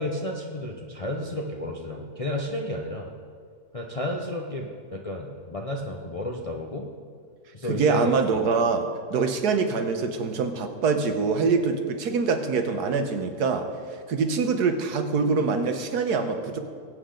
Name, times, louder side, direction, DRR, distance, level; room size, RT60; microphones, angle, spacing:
voice 1, 0.0-3.1 3.7-6.9 7.5-8.1, left 1 dB, 30° left, 0 dB, 0.7 m, -32 dB
voice 2, 7.6-16.6, right 4 dB, 75° right, 7 dB, 1.6 m, -24 dB
21.0 x 8.5 x 3.9 m, 2.1 s
omnidirectional pair, 1.7 m